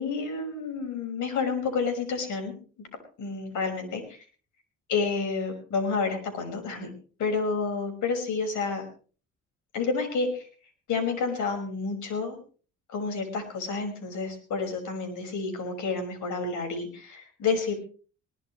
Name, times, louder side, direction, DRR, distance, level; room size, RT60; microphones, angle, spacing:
voice 1, 0.0-2.5 2.8-2.9 3.2-4.2 4.9-6.9 7.2-8.8 9.7-10.5 10.9-12.4 12.9-17.7, left 4 dB, 75° left, 5 dB, 5.7 m, -29 dB
21.0 x 20.0 x 3.2 m, 0.40 s
cardioid pair, 90°, 30 cm